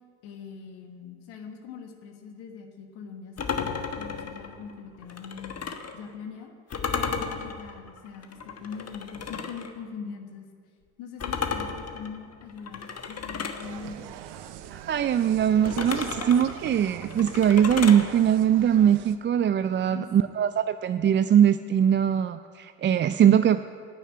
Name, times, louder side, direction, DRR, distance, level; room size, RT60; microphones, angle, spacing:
voice 1, 0.2-5.5 5.9-6.5 6.9-10.5 11.0-14.1 19.8-20.1, left 6 dB, 70° left, 3 dB, 1.6 m, -42 dB
sound 1, 3.4-6.0 6.7-9.7 11.2-13.7 15.6-18.1, left 5 dB, 35° left, 1.3 m, -33 dB
Insect, 13.6-19.2, right 10 dB, 70° right, 0.8 m, -42 dB
voice 2, 14.7-23.6, right 9 dB, 30° right, 11 dB, 0.4 m, -21 dB
11.5 x 7.2 x 8.5 m, 2.1 s
supercardioid pair, 70°, 41 cm